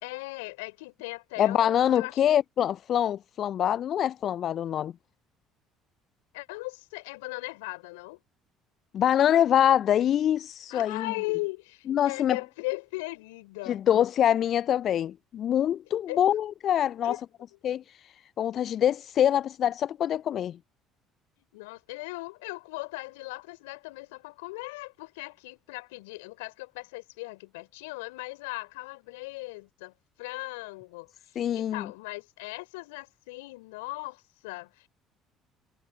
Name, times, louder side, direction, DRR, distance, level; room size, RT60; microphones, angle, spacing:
voice 1, 0.0-2.2 6.3-8.2 10.7-13.8 16.1-16.3 17.0-17.2 21.4-29.9 30.2-31.1 31.5-34.9, left 24 dB, 75° left, 3.8 m, -38 dB
voice 2, 1.4-4.9 8.9-11.1 11.9-12.4 13.7-17.2 17.6-20.6 31.4-31.9, left 10 dB, 50° left, 0.3 m, -25 dB
hypercardioid pair, 55°, 0 cm